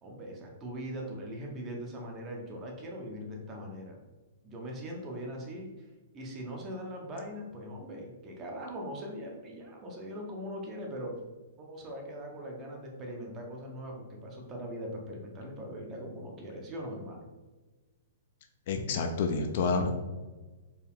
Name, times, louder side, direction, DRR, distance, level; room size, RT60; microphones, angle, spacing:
voice 1, 0.0-4.0 4.4-5.9 6.1-11.2 11.6-17.3, equal, 15° right, 1 dB, 0.6 m, -41 dB
voice 2, 18.7-19.9, left 4 dB, 40° left, 5 dB, 0.3 m, -28 dB
4.5 x 2.3 x 3.5 m, 1.2 s
hypercardioid pair, 175°, 0 cm